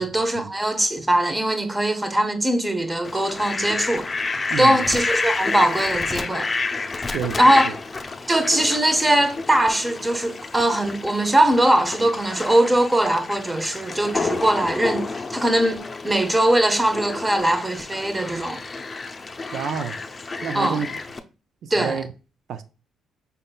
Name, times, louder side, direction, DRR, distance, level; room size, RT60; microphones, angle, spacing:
voice 1, 0.0-6.5 7.4-7.8 8.3-18.6 20.5-20.8 21.7-22.0, right 1 dB, 15° right, 0.8 m, -21 dB
Fowl, 3.0-21.2, left 3 dB, 30° left, 0.6 m, -30 dB
voice 2, 4.5-4.8 7.1-7.6 19.5-20.0 20.4-20.9 21.6-22.1 22.5-22.6, right 7 dB, 75° right, 0.4 m, -28 dB
5.4 x 3.7 x 2.3 m
cardioid pair, 95°, 0 cm